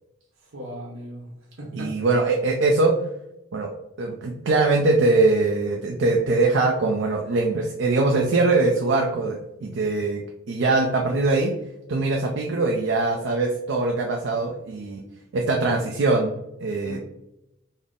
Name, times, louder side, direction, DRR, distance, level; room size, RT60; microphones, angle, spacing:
voice 1, 0.4-2.1 16.8-17.0, equal, 85° right, -2 dB, 0.9 m, -38 dB
voice 2, 1.7-2.9 3.5-3.7 4.0-10.2 10.5-11.5 11.9-15.0 15.3-17.0, right 3 dB, 60° right, 1 dB, 0.4 m, -22 dB
3.9 x 2.0 x 3.5 m, 0.88 s
head